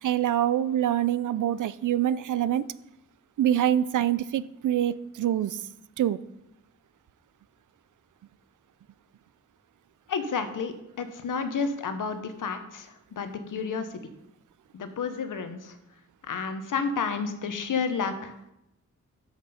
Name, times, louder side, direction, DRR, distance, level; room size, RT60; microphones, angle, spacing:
voice 1, 0.0-2.6 3.4-5.6 6.0-6.2, right 11 dB, 75° right, 17 dB, 0.5 m, -25 dB
voice 2, 10.1-14.0 14.7-15.8 16.3-18.5, left 5 dB, 85° left, 8 dB, 1.1 m, -31 dB
13.0 x 6.0 x 4.2 m, 0.85 s
wide cardioid pair, 140°, 31 cm